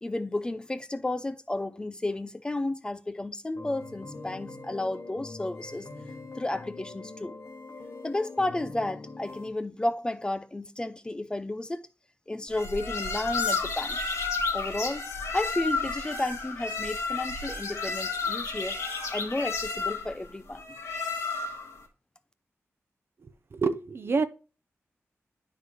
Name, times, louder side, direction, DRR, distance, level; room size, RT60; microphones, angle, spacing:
voice 1, 0.0-5.9 6.3-7.4 8.0-11.8 12.3-14.0 14.5-18.8 19.1-20.6, left 2 dB, 15° left, 0.4 m, -32 dB
sound 1, 3.5-9.5, left 3 dB, 55° left, 0.9 m, -43 dB
sound 2, 12.5-21.8, left 4 dB, 90° left, 1.5 m, -32 dB
voice 2, 23.2-24.2, right 4 dB, 50° right, 0.5 m, -28 dB
11.0 x 3.8 x 3.1 m
wide cardioid pair, 145°, 5 cm